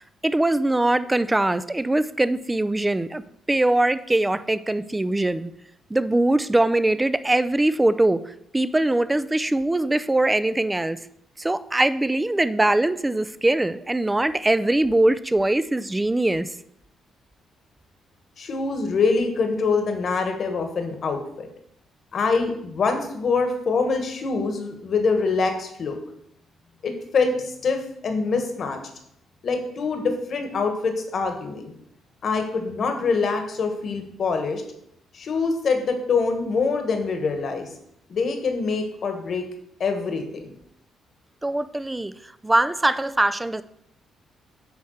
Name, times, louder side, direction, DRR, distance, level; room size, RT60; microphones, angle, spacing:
voice 1, 0.0-3.2 3.5-5.5 5.9-11.0 11.4-16.5 41.4-42.1 42.4-43.6, right 1 dB, 15° right, 14 dB, 0.4 m, -22 dB
voice 2, 18.4-21.5 22.1-26.0 26.8-28.8 29.4-31.7 32.2-34.6 35.1-37.7 38.1-39.4 39.8-40.5, left 4 dB, 55° left, 6 dB, 1.5 m, -24 dB
8.7 x 3.5 x 6.5 m, 0.73 s
cardioid pair, 90°, 0 cm